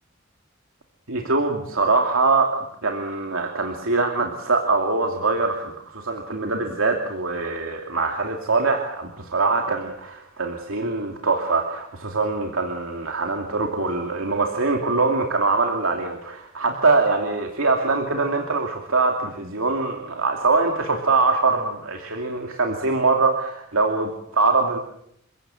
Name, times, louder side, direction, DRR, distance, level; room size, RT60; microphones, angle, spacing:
voice 1, 1.1-2.6 2.8-24.8, right 3 dB, 80° right, 2 dB, 2.7 m, -23 dB
28.0 x 17.0 x 7.8 m, 0.75 s
head